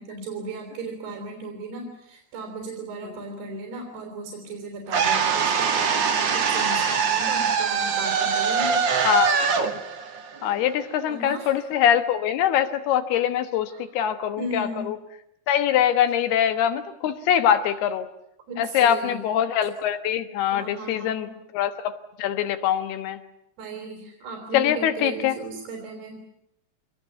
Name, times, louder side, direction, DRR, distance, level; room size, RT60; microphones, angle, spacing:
voice 1, 0.0-8.8 11.1-11.5 13.7-13.8 14.4-14.9 18.5-19.2 20.5-21.4 23.6-26.4, right 2 dB, 80° right, 2 dB, 5.9 m, -36 dB
sound 1, 4.9-11.0, right 6 dB, 55° right, 1.3 m, -23 dB
voice 2, 9.0-9.7 10.4-15.0 15.5-18.1 18.6-23.2 24.5-25.4, left 10 dB, 80° left, 10 dB, 3.4 m, -23 dB
25.0 x 20.5 x 9.3 m, 0.78 s
omnidirectional pair, 4.5 m